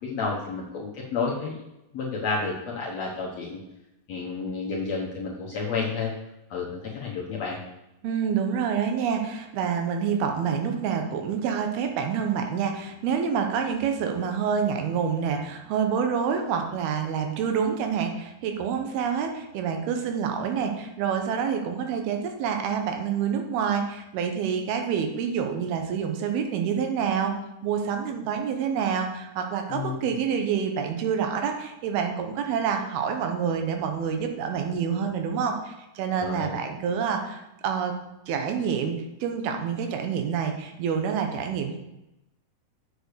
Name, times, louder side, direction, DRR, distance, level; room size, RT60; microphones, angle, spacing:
voice 1, 0.0-1.6 1.9-3.6 4.1-6.1 6.5-6.7 6.9-7.6 29.7-30.0 36.2-36.5, left 4 dB, 65° left, -3 dB, 1.7 m, -30 dB
voice 2, 8.0-27.3 27.6-37.9 38.3-41.8, right 7 dB, 80° right, 4 dB, 2.9 m, -27 dB
7.6 x 6.7 x 6.5 m, 0.93 s
omnidirectional pair, 4.4 m